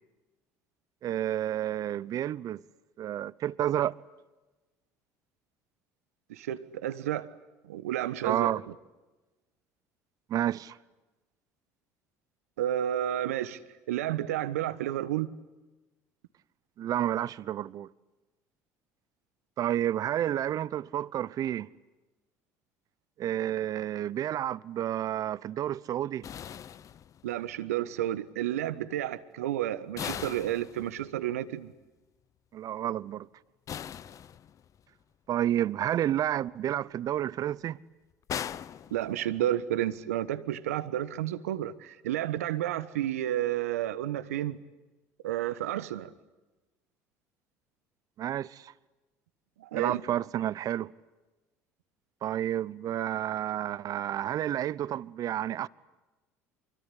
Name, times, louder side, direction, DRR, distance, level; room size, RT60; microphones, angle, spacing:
voice 1, 1.0-2.6 3.0-4.0 8.2-8.6 10.3-10.8 16.8-17.9 19.6-21.7 23.2-26.3 32.5-33.3 35.3-37.8 48.2-48.7 49.7-50.9 52.2-55.7, right 11 dB, 50° right, 0.9 m, -30 dB
voice 2, 6.3-7.3 7.6-8.7 12.6-13.6 13.9-15.3 27.2-31.7 38.9-44.6 45.2-46.1 49.6-50.0, right 12 dB, 80° right, 1.3 m, -31 dB
sound 1, 26.2-27.5 30.0-31.3 33.7-34.8 38.3-39.6, left 9 dB, 45° left, 0.9 m, -40 dB
25.5 x 24.0 x 9.9 m
hypercardioid pair, 65°, 8 cm